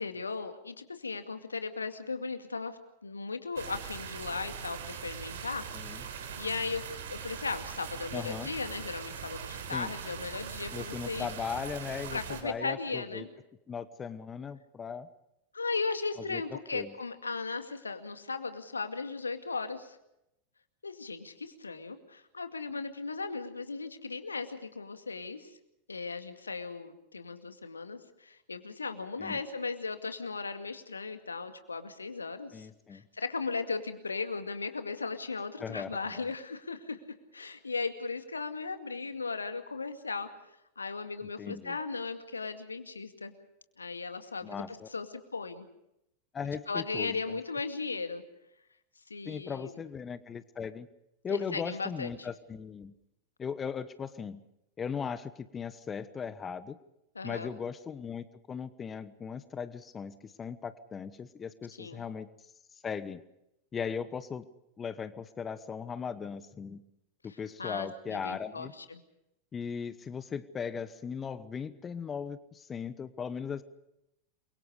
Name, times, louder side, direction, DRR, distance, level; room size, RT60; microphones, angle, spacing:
voice 1, 0.0-11.3 12.1-13.3 15.5-20.0 20.8-25.5 25.9-37.0 37.3-40.3 40.8-43.3 43.8-45.1 45.3-45.7 46.7-48.2 49.1-49.8 51.3-52.3 57.2-57.5 61.8-62.0 67.6-69.0, left 4 dB, 75° left, 8 dB, 2.2 m, -37 dB
sound 1, 3.6-12.4, right 7 dB, 60° right, 4.1 m, -41 dB
voice 2, 8.1-8.5 9.7-9.9 10.7-13.3 13.7-15.1 16.3-16.4 16.7-16.9 29.2-29.4 32.5-33.0 35.6-36.2 41.4-41.8 44.4-44.9 46.3-47.4 49.2-50.9 51.2-52.9 53.4-54.4 54.8-56.8 57.2-62.3 62.8-63.2 63.7-64.5 64.8-66.8 67.2-68.7 69.5-73.6, left 6 dB, 20° left, 14 dB, 1.2 m, -38 dB
29.5 x 23.5 x 5.0 m, 0.84 s
figure-of-eight pair, 90°, 0 cm